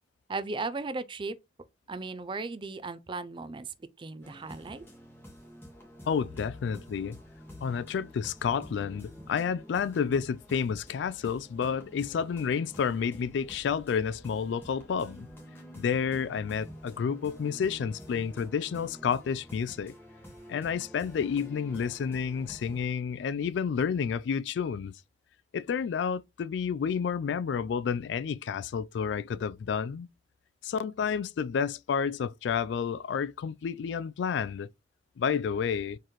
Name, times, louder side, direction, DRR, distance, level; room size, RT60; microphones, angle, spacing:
voice 1, 0.3-1.4 1.9-3.7 4.0-4.8, right 3 dB, 25° right, 0.4 m, -36 dB
sound 1, 4.2-22.9, equal, 15° left, 1.6 m, -49 dB
voice 2, 6.1-7.2 7.6-15.3 15.8-19.9 20.5-25.0 25.5-30.1 30.6-34.7 35.2-36.0, left 6 dB, 70° left, 0.3 m, -30 dB
4.5 x 3.8 x 3.0 m
head